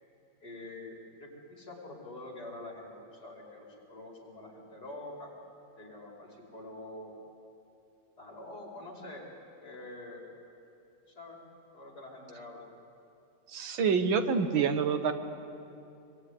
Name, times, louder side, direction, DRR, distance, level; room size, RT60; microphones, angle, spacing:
voice 1, 0.4-5.3 5.8-7.2 8.2-9.3 9.6-10.2 11.1-11.4 11.7-12.7, left 2 dB, 50° left, -1 dB, 5.6 m, -46 dB
voice 2, 13.5-15.1, right 6 dB, 85° right, 8 dB, 2.1 m, -27 dB
25.5 x 22.0 x 9.8 m, 2.7 s
omnidirectional pair, 2.1 m